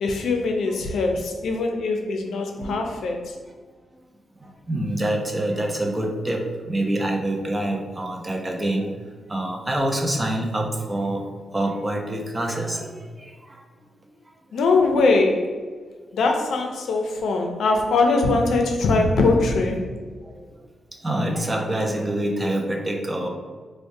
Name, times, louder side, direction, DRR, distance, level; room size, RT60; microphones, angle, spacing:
voice 1, 0.0-3.2 14.5-15.5 16.1-19.8, left 3 dB, 85° left, 3 dB, 0.4 m, -21 dB
voice 2, 2.5-2.9 4.4-8.9 9.3-11.2 11.5-13.6 20.3-20.4 21.0-23.3, right 1 dB, 20° right, 1 dB, 0.4 m, -26 dB
4.5 x 2.1 x 2.6 m, 1.5 s
wide cardioid pair, 135°, 0 cm